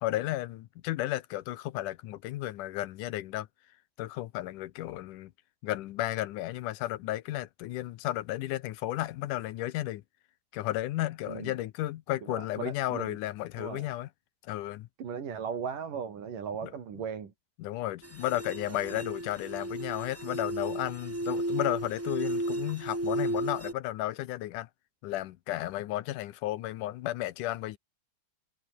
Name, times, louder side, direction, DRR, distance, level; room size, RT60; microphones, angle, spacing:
voice 1, 0.0-3.5 4.0-5.3 5.6-10.0 10.5-14.1 14.4-14.9 16.6-16.7 17.6-24.7 25.0-27.8, left 15 dB, 75° left, 2.3 m, -33 dB
voice 2, 12.3-13.2 13.6-13.9 15.0-17.3 18.7-19.0, right 7 dB, 80° right, 4.8 m, -37 dB
sound 1, 18.0-23.7, right 1 dB, 10° right, 0.9 m, -34 dB
omnidirectional pair, 3.7 m